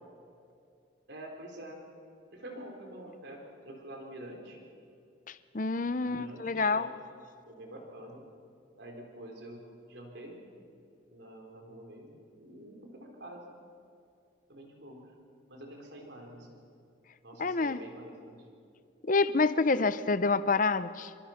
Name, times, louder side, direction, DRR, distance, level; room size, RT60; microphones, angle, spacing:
voice 1, 1.1-1.8 2.3-4.6 6.0-6.9 7.5-8.2 8.8-10.4 11.1-13.4 14.5-15.1 15.5-16.6 17.2-18.4, right 1 dB, 60° right, 1 dB, 4.1 m, -47 dB
voice 2, 5.3-6.9 17.4-17.8 19.0-21.1, left 3 dB, 40° left, 14 dB, 0.7 m, -28 dB
26.5 x 25.0 x 5.9 m, 2.4 s
head